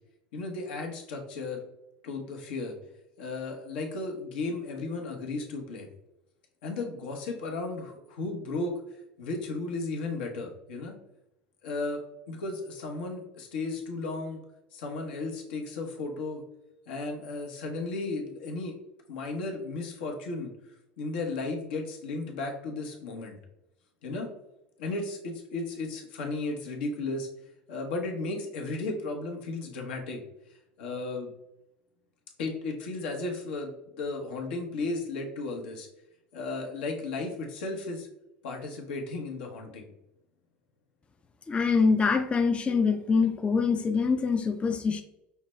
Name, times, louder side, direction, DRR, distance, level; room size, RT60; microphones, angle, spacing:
voice 1, 0.3-1.6 2.0-2.7 3.2-5.9 6.6-8.8 9.2-11.0 11.6-12.0 12.3-14.4 14.7-16.4 16.9-18.7 19.1-20.5 21.0-23.4 24.0-24.3 24.8-27.3 27.7-30.2 30.8-31.3 32.4-35.9 36.3-38.1 38.4-39.9, left 3 dB, 80° left, 2 dB, 0.9 m, -34 dB
voice 2, 41.5-45.0, left 5 dB, 20° left, 7 dB, 0.4 m, -24 dB
5.5 x 2.3 x 3.1 m, 0.86 s
hypercardioid pair, 95°, 6 cm